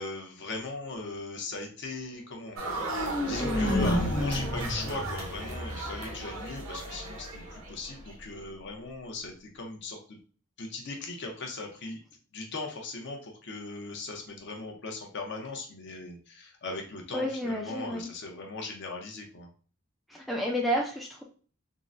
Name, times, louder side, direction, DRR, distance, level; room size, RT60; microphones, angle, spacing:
voice 1, 0.0-2.6 3.3-10.2 10.6-12.0 12.3-19.5, left 3 dB, 55° left, 2 dB, 0.7 m, -38 dB
sound 1, 2.6-6.6, left 1 dB, 85° left, 1.0 m, -31 dB
sound 2, 2.6-8.1, right 2 dB, 70° right, 0.7 m, -37 dB
voice 2, 17.1-18.1 20.1-21.2, equal, ahead, -1 dB, 0.4 m, -30 dB
3.7 x 2.1 x 2.5 m, 0.40 s
head